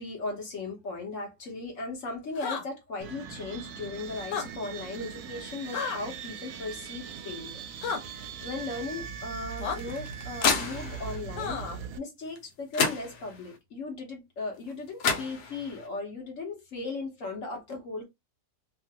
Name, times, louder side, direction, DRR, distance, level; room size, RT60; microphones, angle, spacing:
voice 1, 0.0-7.6 8.0-18.0, left 3 dB, 55° left, 1.1 m, -37 dB
sound 1, 2.3-2.6 4.2-4.5 5.7-6.0 7.8-8.0 9.6-9.8 11.4-11.8, left 6 dB, 90° left, 1.3 m, -32 dB
sound 2, 3.0-12.0, right 7 dB, 70° right, 1.0 m, -40 dB
sound 3, 9.6-11.2 12.4-12.5 12.7-13.6 14.7-14.8 15.0-15.9, left 5 dB, 70° left, 1.2 m, -30 dB
2.9 x 2.4 x 2.8 m
omnidirectional pair, 1.8 m